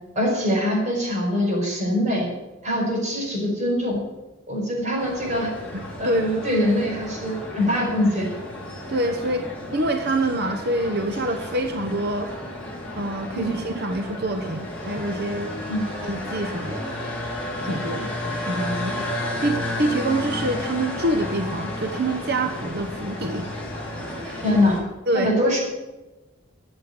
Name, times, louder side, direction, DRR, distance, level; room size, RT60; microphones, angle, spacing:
voice 1, 0.1-2.3 2.6-4.0 4.5-5.5 6.0-8.3 13.3-13.5 15.7-15.8 17.9-18.1 24.4-24.8 25.1-25.6, left 1 dB, 35° right, -1 dB, 5.1 m, -23 dB
sound 1, 5.0-24.8, left 1 dB, 5° left, 3.9 m, -32 dB
voice 2, 5.7-6.4 8.9-12.4 13.0-15.5 16.0-17.1 17.6-18.0 18.5-18.9 19.4-23.5 24.0-24.6 25.1-25.3, right 1 dB, 50° right, 6 dB, 1.0 m, -26 dB
13.0 x 7.8 x 9.5 m, 1.1 s
head